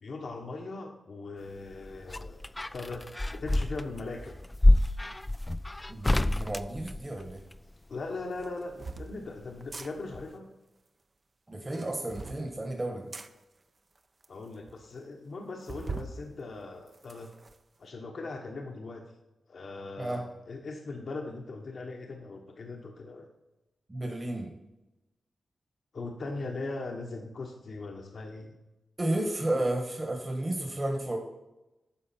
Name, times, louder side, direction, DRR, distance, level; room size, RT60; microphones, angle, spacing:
voice 1, 0.0-2.4 2.7-3.0 3.4-4.3 7.9-10.5 14.3-17.3 17.8-19.1 19.5-23.3 25.9-28.5, left 3 dB, 60° left, 1 dB, 1.1 m, -39 dB
sound 1, 1.6-7.6 9.0-9.9 10.1-10.2, left 1 dB, 15° left, 0.3 m, -28 dB
voice 2, 5.9-7.4 11.5-13.1 20.0-20.2 23.9-24.5 29.0-31.2, right 1 dB, 25° right, 1 dB, 1.4 m, -32 dB
sound 2, 7.3-7.5 8.4-9.1 9.6-9.9 11.6-12.4 13.1-13.3 14.0-14.1 14.2-14.3 14.7-14.8 15.7-16.1 16.6-17.6, right 4 dB, 40° right, 0.7 m, -41 dB
10.0 x 6.5 x 4.4 m, 0.99 s
wide cardioid pair, 95°, 0 cm